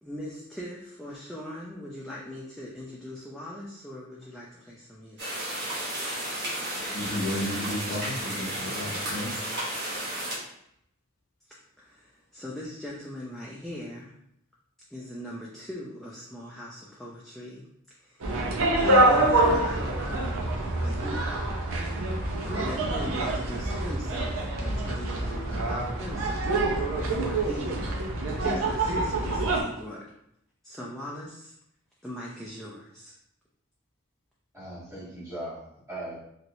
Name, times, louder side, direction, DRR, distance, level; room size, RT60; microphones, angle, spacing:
voice 1, 0.0-5.4 11.5-14.1 14.9-17.6 18.0-18.3 18.7-21.7 22.2-27.8 28.4-30.0 30.6-31.5 32.0-33.1, equal, ahead, -6 dB, 0.4 m, -40 dB
sound 1, 5.2-10.4, right 1 dB, 55° right, 1.1 m, -33 dB
voice 2, 6.9-9.3, left 1 dB, 60° left, -2 dB, 0.7 m, -32 dB
sound 2, 18.2-29.6, right 2 dB, 80° right, 0.6 m, -26 dB
voice 3, 34.5-36.2, right 1 dB, 15° right, -9 dB, 1.5 m, -39 dB
3.0 x 2.9 x 2.6 m, 0.75 s
head